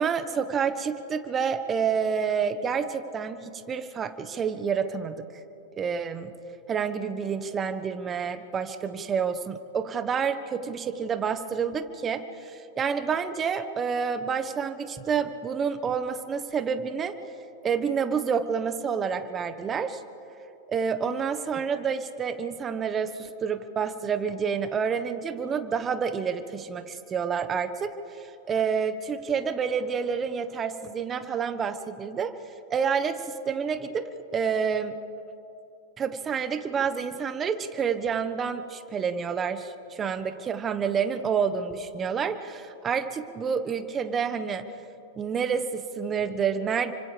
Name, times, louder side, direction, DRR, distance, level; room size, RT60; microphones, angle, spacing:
voice 1, 0.0-5.2 5.8-6.3 6.7-17.1 17.6-20.0 20.7-32.4 32.7-34.1 34.3-35.0 36.0-44.7 45.1-46.9, right 6 dB, 25° right, 10 dB, 1.3 m, -28 dB
30.0 x 25.5 x 3.5 m, 2.8 s
hypercardioid pair, 100°, 0 cm